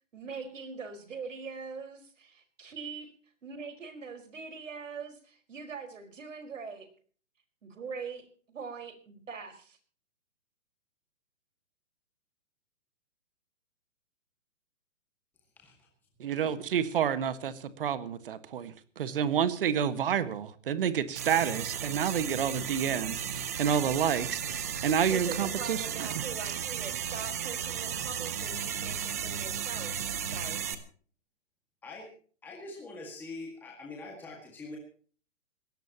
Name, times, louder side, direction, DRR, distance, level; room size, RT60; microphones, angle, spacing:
voice 1, 0.1-3.1 3.4-6.9 7.6-9.8 25.1-30.7, right 5 dB, 85° right, 7 dB, 4.9 m, -42 dB
voice 2, 16.2-26.1, right 8 dB, 45° right, 13 dB, 1.6 m, -29 dB
sound 1, 21.2-30.8, right 8 dB, 15° right, 0.6 m, -35 dB
voice 3, 32.4-34.8, left 3 dB, 5° left, -1 dB, 1.9 m, -43 dB
22.0 x 17.0 x 2.9 m, 0.43 s
hypercardioid pair, 170°, 37 cm